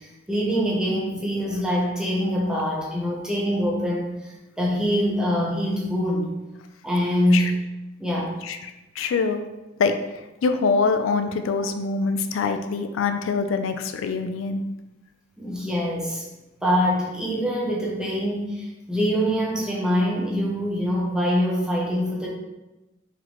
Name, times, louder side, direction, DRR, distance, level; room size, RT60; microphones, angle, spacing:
voice 1, 0.0-6.3 6.8-7.5 8.0-8.4 15.4-16.3 16.6-22.3, equal, 5° right, -3 dB, 0.7 m, -24 dB
voice 2, 8.4-9.4 9.8-9.9 10.4-14.6, left 4 dB, 90° left, 7 dB, 0.4 m, -24 dB
3.8 x 3.2 x 3.0 m, 1.0 s
head